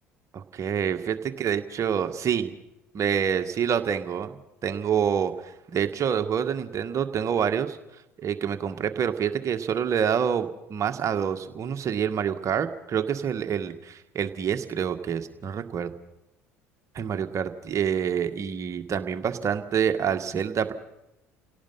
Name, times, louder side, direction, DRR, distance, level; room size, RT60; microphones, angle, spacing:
voice 1, 0.3-2.5 2.9-4.3 4.6-7.8 8.2-15.9 16.9-20.7, right 8 dB, 40° right, 7 dB, 1.9 m, -27 dB
29.0 x 17.5 x 5.6 m, 0.88 s
hypercardioid pair, 60°, 8 cm